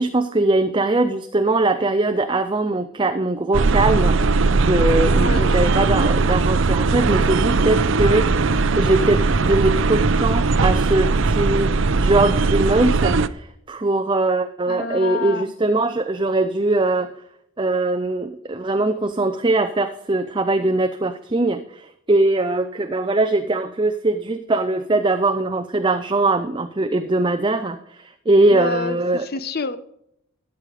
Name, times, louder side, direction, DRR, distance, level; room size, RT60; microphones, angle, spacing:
voice 1, 0.0-17.1 17.6-29.2, right 2 dB, 25° right, 9 dB, 0.6 m, -21 dB
sound 1, 3.5-13.3, right 3 dB, 60° right, 0.6 m, -19 dB
voice 2, 5.1-5.5 14.7-15.5 28.5-29.8, left 4 dB, 45° left, 13 dB, 0.9 m, -28 dB
13.5 x 9.2 x 4.9 m, 0.75 s
head